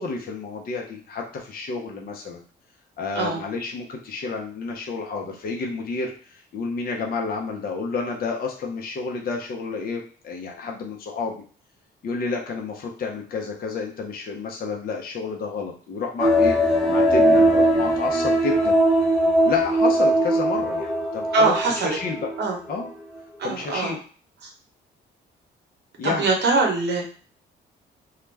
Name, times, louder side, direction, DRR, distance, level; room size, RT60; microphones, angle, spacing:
voice 1, 0.0-2.4 3.0-11.3 12.0-16.6 16.9-18.8 19.4-21.6 21.8-22.3 22.7-22.9 23.4-24.0 26.0-26.3, left 4 dB, 50° left, 1 dB, 0.6 m, -30 dB
sound 1, 16.2-22.4 22.8-22.9, right 1 dB, ahead, 0.6 m, -20 dB
voice 2, 21.3-22.0 22.4-22.6 23.4-23.9 26.0-27.1, right 3 dB, 60° right, 1 dB, 0.9 m, -22 dB
2.3 x 2.1 x 3.2 m, 0.41 s
cardioid pair, 90°, 20 cm